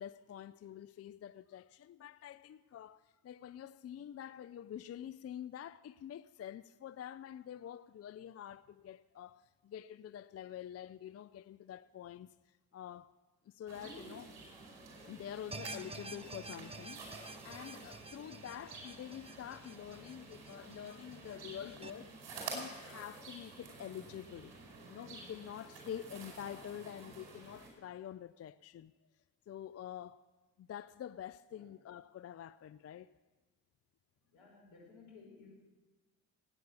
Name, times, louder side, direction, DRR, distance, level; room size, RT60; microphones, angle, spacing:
voice 1, 0.0-12.3 12.7-13.1 13.5-14.4 15.1-22.2 22.5-24.5 24.9-28.9 29.5-30.2 30.6-33.1, left 10 dB, 35° left, 0.5 m, -47 dB
sound 1, 13.7-27.7, right 3 dB, 60° right, 5.4 m, -50 dB
sound 2, 15.5-21.9, right 3 dB, 10° right, 0.8 m, -50 dB
voice 2, 34.3-35.5, left 4 dB, 70° left, 5.6 m, -57 dB
18.5 x 9.4 x 7.1 m
hypercardioid pair, 50°, 48 cm